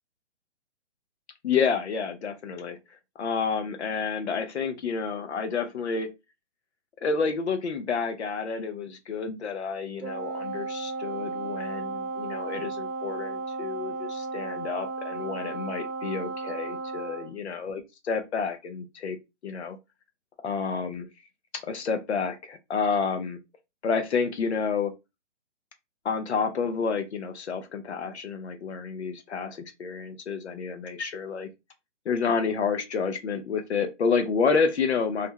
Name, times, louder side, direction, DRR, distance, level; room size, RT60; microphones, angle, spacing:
voice 1, 1.4-2.8 3.2-6.1 7.0-19.2 19.4-19.8 20.4-21.1 21.5-23.4 23.8-24.9 26.0-31.5 32.1-35.3, left 5 dB, 60° left, 0.6 m, -29 dB
Wind instrument woodwind instrument, 10.0-17.3, right 4 dB, 85° right, 0.7 m, -34 dB
2.5 x 2.1 x 2.8 m
hypercardioid pair, 170°, 37 cm